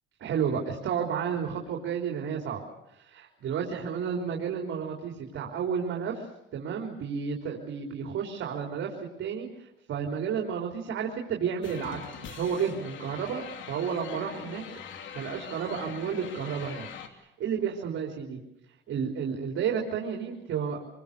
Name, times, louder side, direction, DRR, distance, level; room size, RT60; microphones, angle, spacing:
voice 1, 0.2-2.6 2.9-6.3 6.5-14.6 15.1-18.4 18.9-20.8, right 7 dB, 75° right, 1 dB, 3.9 m, -32 dB
sound 1, 11.6-17.1, left 8 dB, 75° left, 3.0 m, -42 dB
26.5 x 23.0 x 6.9 m, 0.87 s
cardioid pair, 90°, 20 cm